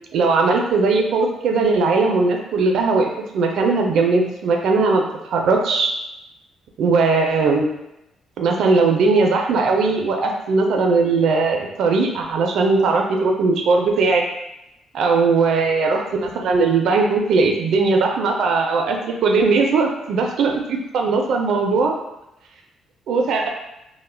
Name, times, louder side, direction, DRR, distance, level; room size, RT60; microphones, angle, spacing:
voice 1, 0.1-3.1 3.3-5.9 6.8-7.7 8.4-14.2 14.9-21.9 23.1-23.5, right 4 dB, 75° right, 2 dB, 0.3 m, -19 dB
2.2 x 2.0 x 3.1 m, 0.88 s
cardioid pair, 90°, 0 cm